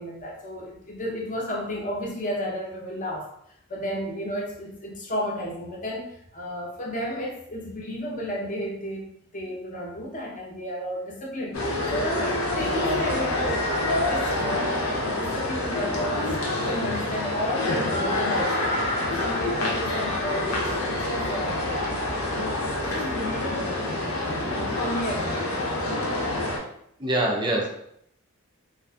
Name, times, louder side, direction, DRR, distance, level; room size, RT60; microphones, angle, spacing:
voice 1, 0.0-3.3 3.7-11.6 11.9-18.7 19.1-21.8 22.8-25.4 27.4-27.7, equal, 40° left, -2 dB, 0.7 m, -33 dB
sound 1, 11.5-26.6, left 1 dB, 80° left, 0.6 m, -27 dB
voice 2, 27.0-27.7, right 1 dB, 20° right, -1 dB, 0.4 m, -24 dB
2.5 x 2.4 x 2.3 m, 0.71 s
head